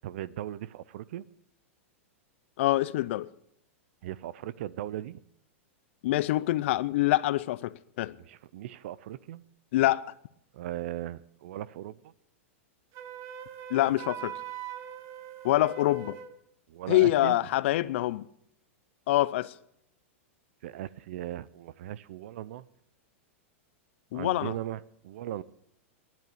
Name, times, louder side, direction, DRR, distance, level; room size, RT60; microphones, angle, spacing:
voice 1, 0.0-1.2 4.0-5.2 8.2-9.4 10.5-12.1 16.7-17.4 20.6-22.7 24.1-25.4, right 13 dB, 65° right, 0.6 m, -38 dB
voice 2, 2.6-3.3 6.0-8.1 9.7-10.1 13.7-14.3 15.4-16.2 16.9-18.2 19.1-19.5 24.1-24.5, left 16 dB, 65° left, 0.5 m, -25 dB
Wind instrument woodwind instrument, 12.9-16.4, right 10 dB, 40° right, 1.1 m, -41 dB
10.5 x 9.4 x 8.3 m
hypercardioid pair, 125°, 7 cm